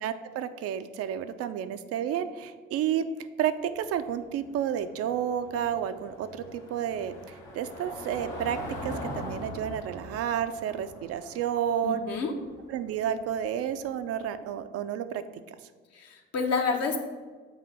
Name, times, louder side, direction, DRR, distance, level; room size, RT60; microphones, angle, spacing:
voice 1, 0.0-3.0 3.4-12.0 12.7-15.2, right 9 dB, 50° right, 10 dB, 0.4 m, -31 dB
Car passing by / Engine, 3.6-14.3, equal, 70° left, 1.3 m, -42 dB
voice 2, 11.8-12.3 15.9-17.0, left 4 dB, 55° left, 4 dB, 0.9 m, -29 dB
6.8 x 2.7 x 5.3 m, 1.4 s
hypercardioid pair, 45°, 31 cm